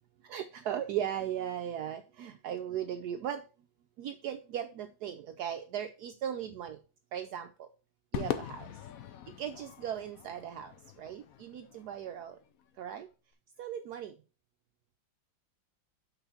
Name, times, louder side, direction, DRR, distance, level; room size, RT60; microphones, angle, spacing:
voice 1, 0.3-3.4 4.0-6.8 7.1-7.7 8.1-8.7 9.4-10.7 11.0-12.4 12.8-13.1 13.6-14.1, right 10 dB, 70° right, 1.0 m, -37 dB
Crowd / Fireworks, 8.1-12.6, left 10 dB, 65° left, 0.9 m, -41 dB
6.0 x 4.0 x 5.7 m
omnidirectional pair, 2.0 m